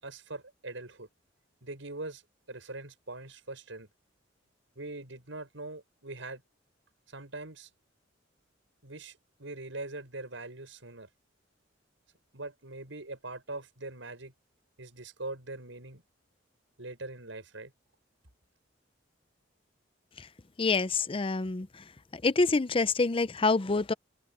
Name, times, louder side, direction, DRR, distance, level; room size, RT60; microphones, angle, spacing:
voice 1, 0.0-1.1 1.6-2.2 2.5-3.9 4.7-6.4 7.1-7.7 8.8-11.1 12.3-14.3 14.8-16.0 16.8-17.7, right 2 dB, 90° right, 6.4 m, -42 dB
voice 2, 20.6-21.8 22.1-23.9, left 3 dB, 30° left, 0.6 m, -27 dB
open air
head